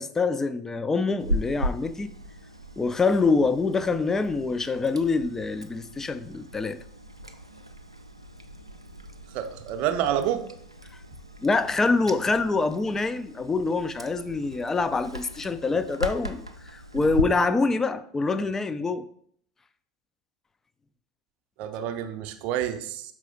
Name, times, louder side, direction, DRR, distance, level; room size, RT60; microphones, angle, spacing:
voice 1, 0.0-2.1 2.8-6.8 11.4-19.1, left 3 dB, 15° left, 0.4 m, -25 dB
Chewing mastication, 1.2-17.2, equal, 90° right, 0.4 m, -37 dB
voice 2, 9.3-10.4 21.6-23.1, right 10 dB, 50° right, 0.6 m, -28 dB
6.1 x 4.8 x 3.8 m
figure-of-eight pair, 75°, 3 cm